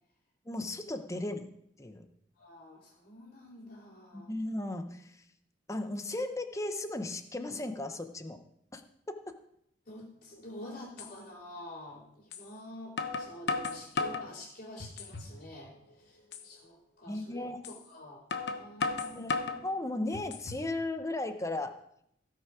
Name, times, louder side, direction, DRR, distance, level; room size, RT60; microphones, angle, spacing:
voice 1, 0.5-1.4 1.8-2.0 4.1-5.1 5.7-8.4 8.7-8.8 17.1-17.6 19.1-19.3 19.6-21.8, left 2 dB, 15° left, 7 dB, 0.8 m, -35 dB
voice 2, 2.4-4.3 9.8-16.2 16.4-19.6, left 1 dB, 50° left, -7 dB, 3.0 m, -48 dB
sound 1, 10.4-10.5 11.0-11.1 12.3-12.5 13.0-14.3 14.8-15.3 15.7-15.8 16.3-16.5 17.6-17.8 18.3-19.6 20.1-20.7, left 4 dB, 65° left, 0.9 m, -34 dB
16.5 x 5.6 x 4.9 m, 0.74 s
head